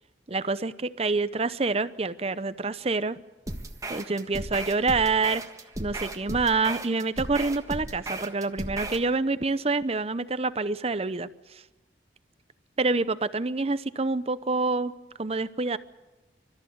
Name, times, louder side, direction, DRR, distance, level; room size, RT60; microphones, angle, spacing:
voice 1, 0.3-3.2 3.9-5.4 5.8-11.3 12.8-14.9 15.2-15.8, right 3 dB, 35° right, 14 dB, 0.8 m, -27 dB
sound 1, 3.5-9.1, right 2 dB, 20° right, 1.5 m, -36 dB
28.5 x 14.0 x 9.5 m, 1.1 s
head